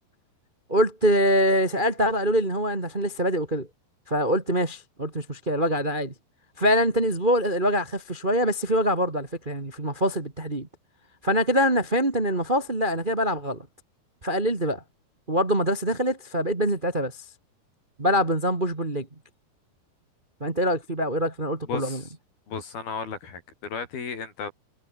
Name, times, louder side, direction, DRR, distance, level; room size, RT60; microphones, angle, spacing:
voice 1, 0.7-3.7 4.1-6.1 6.6-10.7 11.2-13.7 14.2-14.8 15.3-17.2 18.0-19.1 20.4-22.0, equal, 20° right, 1.6 m, -24 dB
voice 2, 21.7-22.1 22.5-24.5, left 5 dB, 75° left, 7.0 m, -34 dB
omnidirectional pair, 4.3 m